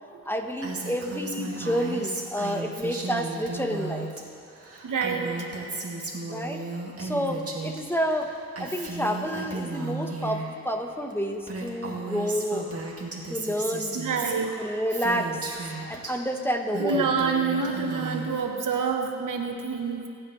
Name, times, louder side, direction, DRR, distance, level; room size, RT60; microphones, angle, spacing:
voice 1, 0.3-4.1 6.3-6.6 7.0-8.3 8.6-12.7 13.3-14.0 14.6-15.4 15.9-17.1, equal, 5° left, 4 dB, 1.1 m, -29 dB
Female speech woman speaking, 0.6-4.2 4.5-7.8 8.1-10.5 11.1-11.2 11.4-16.1 16.5-18.5, right 3 dB, 50° right, 2.1 m, -35 dB
voice 2, 4.8-5.5 13.9-14.7 15.8-16.0 16.8-20.1, right 5 dB, 90° right, 4 dB, 1.1 m, -27 dB
24.0 x 9.2 x 3.2 m, 2.5 s
cardioid pair, 70°, 31 cm